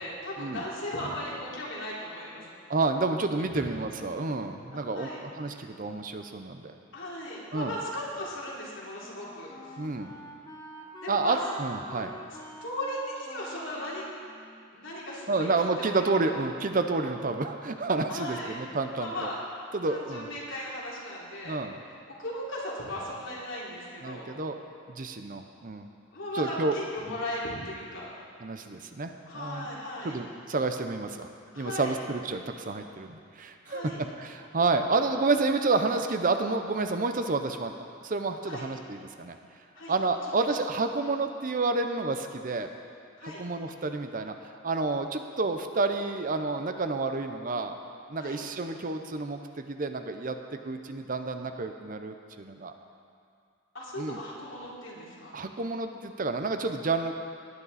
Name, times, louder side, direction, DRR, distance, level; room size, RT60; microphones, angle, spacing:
voice 1, 0.0-2.4 3.4-3.7 4.7-5.2 6.9-9.8 11.0-11.4 12.6-14.1 14.7-16.3 18.1-18.6 19.0-19.4 19.9-21.6 22.2-24.3 26.1-28.1 29.3-30.2 31.5-32.0 33.7-34.0 38.4-38.7 39.7-39.9 40.3-40.4 43.2-43.4 48.2-48.4 53.7-55.3, left 1 dB, 70° left, -5 dB, 3.2 m, -37 dB
voice 2, 2.7-6.7 7.5-7.8 9.8-10.1 11.1-12.1 15.3-19.3 19.7-20.3 21.4-21.8 24.0-24.6 24.9-25.9 26.3-26.8 27.1-27.2 28.4-29.7 30.0-31.3 31.5-33.9 34.2-37.7 38.0-39.4 39.9-42.7 43.2-44.3 44.6-47.8 48.1-50.4 50.6-52.7 54.0-54.2 55.3-57.1, right 3 dB, 40° right, 7 dB, 0.6 m, -29 dB
Wind instrument woodwind instrument, 8.0-15.3, right 1 dB, 20° left, 1.0 m, -48 dB
18.5 x 9.6 x 4.1 m, 2.3 s
head